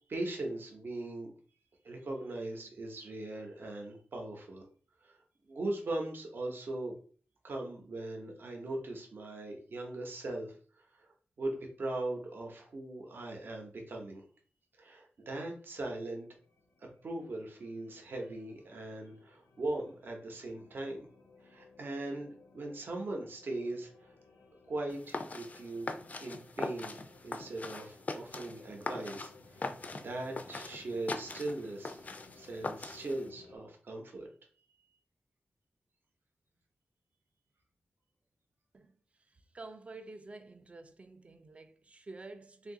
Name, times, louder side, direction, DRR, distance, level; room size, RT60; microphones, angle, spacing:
voice 1, 0.1-1.3 1.8-4.6 5.0-5.2 5.5-7.0 7.4-10.6 10.9-11.1 11.4-14.3 14.8-16.3 17.0-21.1 21.4-24.1 24.7-29.6 29.9-32.1 32.4-34.3, right 2 dB, 60° right, 0.7 m, -39 dB
sound 1, 16.0-33.6, left 3 dB, 85° left, 0.6 m, -60 dB
sound 2, 24.9-33.3, left 3 dB, 40° left, 0.4 m, -42 dB
voice 2, 38.7-42.7, right 2 dB, 30° right, 0.4 m, -49 dB
2.7 x 2.4 x 3.7 m
wide cardioid pair, 110°, 4 cm